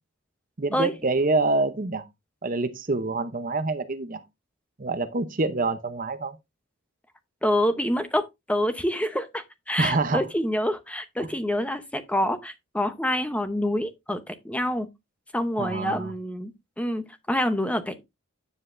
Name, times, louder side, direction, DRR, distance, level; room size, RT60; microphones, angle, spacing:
voice 1, 0.6-2.1 2.4-4.2 4.8-6.4 9.8-10.2 15.6-16.1, right 3 dB, 40° right, 0.7 m, -26 dB
voice 2, 7.4-14.9 15.3-16.5 16.8-18.0, left 1 dB, 5° left, 0.8 m, -27 dB
9.9 x 7.5 x 2.6 m
head